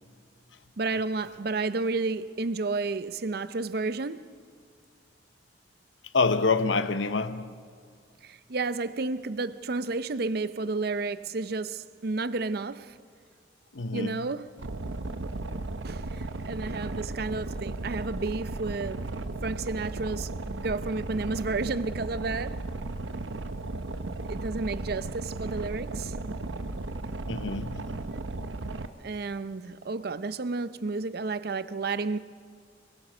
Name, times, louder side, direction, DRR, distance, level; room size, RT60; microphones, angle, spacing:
voice 1, 0.8-4.4 8.2-13.0 13.9-14.5 15.8-19.1 19.4-22.6 24.1-26.1 29.0-32.2, right 3 dB, 55° right, 0.6 m, -31 dB
voice 2, 6.1-7.5 13.7-14.3 27.3-27.9, left 4 dB, 80° left, 0.9 m, -27 dB
Boat Water vehicle, 14.6-28.9, right 2 dB, 85° right, 0.9 m, -35 dB
23.0 x 21.5 x 6.1 m
head